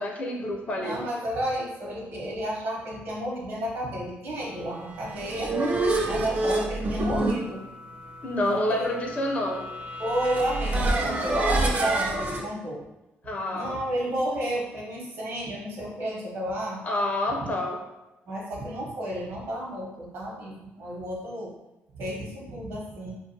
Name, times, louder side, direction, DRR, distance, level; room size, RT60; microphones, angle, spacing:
voice 1, 0.0-1.0 8.2-9.6 13.2-13.8 16.8-17.8, left 1 dB, 35° left, 1 dB, 0.5 m, -28 dB
voice 2, 0.7-5.5 6.1-7.6 8.5-8.9 10.0-12.8 13.5-16.8 18.3-21.5 21.9-23.2, right 1 dB, 70° right, -2 dB, 0.8 m, -31 dB
sound 1, 4.9-12.4, right 2 dB, 35° right, 0.4 m, -28 dB
2.4 x 2.3 x 2.6 m, 0.99 s
cardioid pair, 115°, 4 cm